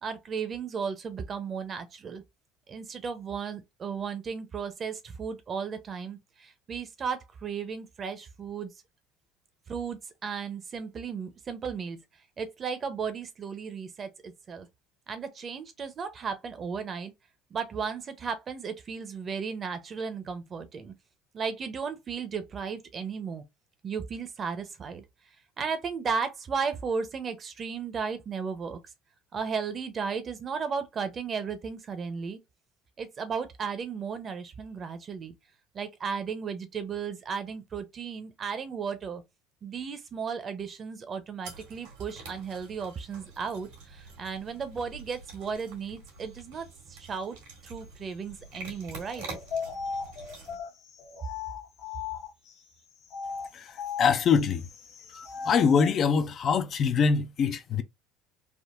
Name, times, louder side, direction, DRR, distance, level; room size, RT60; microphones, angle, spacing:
voice 1, 0.0-2.2 2.7-8.7 9.7-12.0 12.4-14.7 15.1-17.1 17.5-20.9 21.3-23.4 23.8-25.0 25.6-28.8 29.3-32.4 33.0-35.3 35.7-39.2 39.6-47.4 47.6-49.2, right 6 dB, 40° right, 0.7 m, -35 dB
sound 1, 41.4-50.6, right 3 dB, 85° right, 1.6 m, -46 dB
sound 2, 49.1-52.5 53.0-56.0, left 6 dB, 65° left, 0.8 m, -37 dB
voice 2, 53.5-54.7 55.4-57.8, left 6 dB, 45° left, 0.4 m, -24 dB
3.5 x 2.1 x 2.4 m
supercardioid pair, 90°, 0 cm